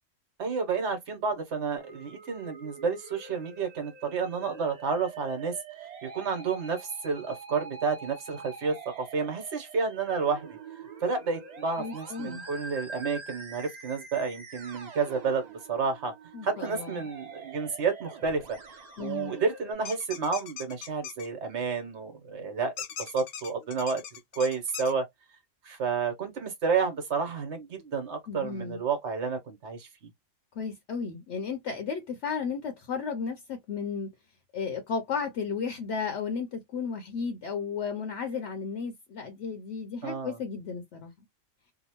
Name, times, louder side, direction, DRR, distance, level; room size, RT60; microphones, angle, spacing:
voice 1, 0.4-5.5 6.0-10.6 11.0-16.1 16.4-18.6 19.0-22.7 23.0-25.1 25.6-30.1 40.0-40.4, right 5 dB, 65° right, 1.1 m, -30 dB
Musical instrument, 1.8-19.7, right 4 dB, 40° right, 0.7 m, -46 dB
voice 2, 11.8-12.5 16.3-17.0 19.0-19.3 28.3-28.8 30.6-34.1 34.5-41.1, left 5 dB, 70° left, 0.9 m, -34 dB
sound 1, 19.8-21.3 22.8-24.9, left 8 dB, 85° left, 1.0 m, -40 dB
2.8 x 2.1 x 2.8 m
omnidirectional pair, 1.3 m